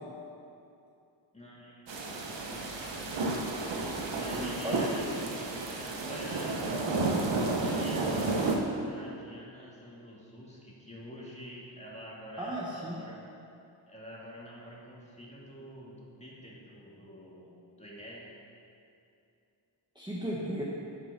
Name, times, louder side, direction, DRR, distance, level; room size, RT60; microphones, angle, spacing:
voice 1, 1.3-3.6 4.2-6.8 7.6-13.2 13.9-18.3, equal, 15° left, -5 dB, 2.2 m, -47 dB
sound 1, 1.9-8.6, right 2 dB, 70° right, 1.2 m, -32 dB
voice 2, 4.3-4.9 5.1-5.3 12.4-13.0 19.9-20.6, right 1 dB, 10° right, -6 dB, 1.2 m, -35 dB
11.0 x 6.2 x 5.9 m, 2.6 s
wide cardioid pair, 105°, 46 cm